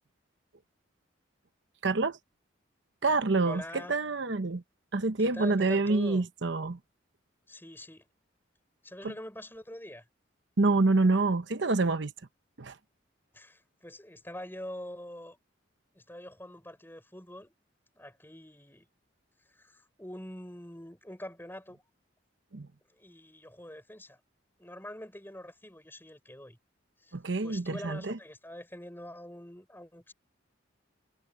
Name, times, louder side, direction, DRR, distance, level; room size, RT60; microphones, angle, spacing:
voice 1, 1.8-2.2 3.0-4.6 4.9-6.8 10.6-12.1 12.6-12.8 22.5-22.7 27.1-28.2, right 3 dB, 65° right, 0.9 m, -27 dB
voice 2, 3.4-4.0 5.2-6.3 7.5-8.1 8.8-10.1 13.3-15.4 15.9-17.5 17.9-18.9 19.4-21.8 23.0-24.2 24.6-26.6 27.0-27.2 27.4-30.1, left 1 dB, 10° left, 5.9 m, -45 dB
head